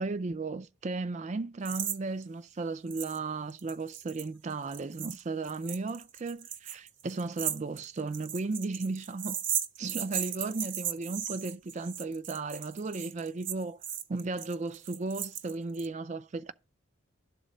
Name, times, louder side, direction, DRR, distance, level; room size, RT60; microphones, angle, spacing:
voice 1, 0.0-9.4 9.8-13.8 14.1-16.5, right 3 dB, 35° right, 0.4 m, -35 dB
sound 1, 1.7-2.0 2.2-2.3 2.9-3.2 3.5-15.9, right 10 dB, 60° right, 0.7 m, -36 dB
11.5 x 4.0 x 6.5 m
head